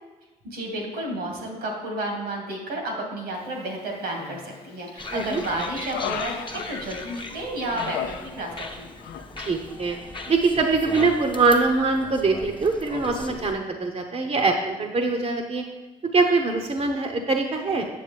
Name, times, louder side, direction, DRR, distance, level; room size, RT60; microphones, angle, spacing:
voice 1, 0.4-8.9, right 1 dB, 80° right, 0 dB, 2.0 m, -31 dB
Human voice, 4.1-4.7 5.1-7.2 7.7-8.7 9.0-9.3, left 9 dB, 80° left, 0.5 m, -35 dB
sound 1, 5.0-13.6, left 3 dB, 30° left, 1.1 m, -38 dB
voice 2, 9.4-10.0 10.3-15.6 16.1-17.8, right 3 dB, 40° right, 3 dB, 0.9 m, -23 dB
8.5 x 7.1 x 3.4 m, 1.1 s
hypercardioid pair, 45°, 16 cm